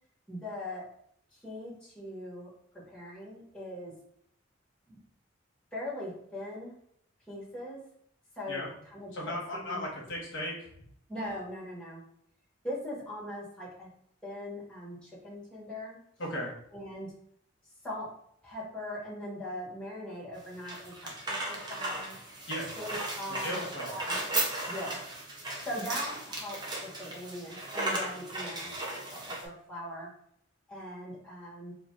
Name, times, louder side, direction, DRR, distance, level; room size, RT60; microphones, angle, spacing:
voice 1, 0.3-0.9 1.4-2.5 2.9-3.9 4.9-5.0 5.7-6.8 7.3-7.8 8.4-9.8 11.1-12.0 12.6-13.9 14.2-16.0 16.7-17.1 17.8-18.1 18.4-22.1 22.8-23.6 23.9-24.2 24.7-25.0 25.6-28.8 29.1-30.1 30.7-31.7, left 1 dB, 5° left, -7 dB, 1.3 m, -40 dB
voice 2, 9.1-10.7 16.2-16.5 22.5-22.7 23.4-24.0, left 1 dB, 65° left, -2 dB, 1.1 m, -36 dB
sound 1, 20.4-29.5, right 2 dB, 20° right, 0.7 m, -36 dB
3.0 x 2.6 x 3.8 m, 0.68 s
head